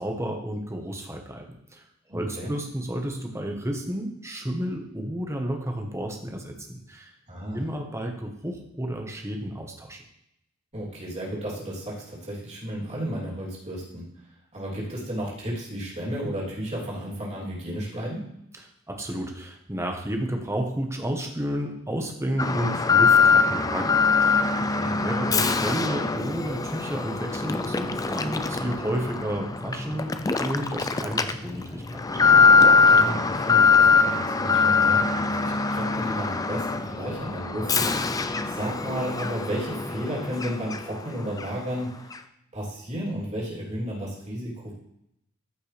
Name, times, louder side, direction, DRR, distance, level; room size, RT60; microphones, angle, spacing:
voice 1, 0.0-7.1 7.5-10.0 18.9-24.5 24.9-30.1 30.4-32.2, right 1 dB, 15° right, 3 dB, 1.2 m, -31 dB
voice 2, 2.1-2.5 7.3-7.7 10.7-14.0 14.5-18.3 24.5-24.9 32.8-42.2 42.5-44.7, equal, 30° right, -5 dB, 3.2 m, -33 dB
Alarm, 22.4-41.1 41.4-41.5 42.1-42.2, left 5 dB, 15° left, 0.4 m, -22 dB
14.0 x 5.8 x 3.4 m, 0.77 s
head